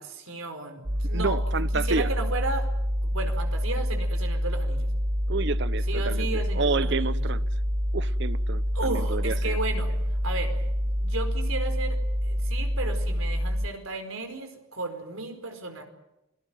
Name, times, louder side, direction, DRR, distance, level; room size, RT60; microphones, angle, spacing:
voice 1, 0.0-2.7 3.0-4.9 5.9-7.3 8.7-15.8, right 3 dB, 75° right, 4.7 m, -34 dB
sound 1, 0.8-13.7, equal, 35° right, 1.3 m, -27 dB
voice 2, 1.1-2.1 5.3-7.4 7.9-9.6, right 4 dB, 55° right, 0.8 m, -30 dB
27.0 x 18.5 x 9.0 m
head